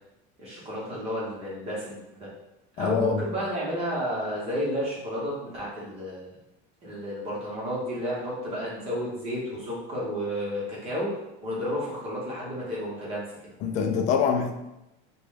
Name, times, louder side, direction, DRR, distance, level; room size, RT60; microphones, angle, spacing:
voice 1, 0.4-2.3 2.8-6.3 6.8-11.1 11.4-13.5, equal, 30° right, -6 dB, 1.0 m, -31 dB
voice 2, 2.8-3.2 13.6-14.5, left 6 dB, 35° left, 6 dB, 0.3 m, -25 dB
3.8 x 2.3 x 3.2 m, 0.91 s
cardioid pair, 165°, 21 cm